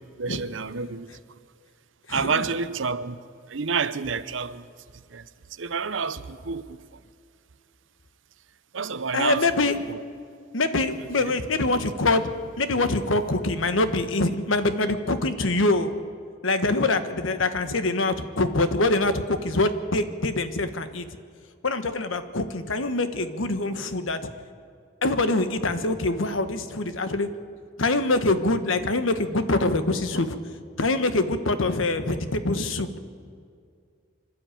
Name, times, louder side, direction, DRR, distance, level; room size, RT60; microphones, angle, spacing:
voice 1, 0.2-1.1 2.1-3.2 3.5-4.6 5.1-5.2 5.6-6.8 8.7-9.5 9.9-10.0 11.2-11.4, right 5 dB, 75° right, 0.8 m, -29 dB
voice 2, 2.1-2.5 9.1-9.8 10.5-12.2 12.6-15.9 16.4-21.1 21.6-24.3 25.0-27.3 27.8-30.4 30.8-33.0, left 2 dB, 85° left, 1.3 m, -24 dB
26.0 x 12.0 x 9.1 m
head